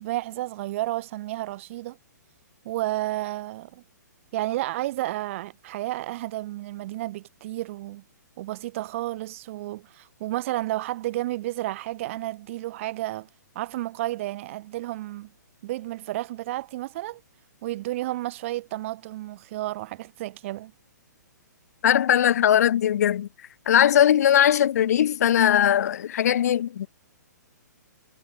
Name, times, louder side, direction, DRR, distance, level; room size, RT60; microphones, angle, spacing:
voice 1, 0.0-2.0 2.6-3.8 4.3-8.0 8.4-13.3 13.5-15.3 15.6-17.2 17.6-20.7, right 16 dB, 45° right, 1.8 m, -31 dB
voice 2, 21.8-23.3 23.7-26.9, left 10 dB, 55° left, 0.7 m, -20 dB
hypercardioid pair, 130°, 10 cm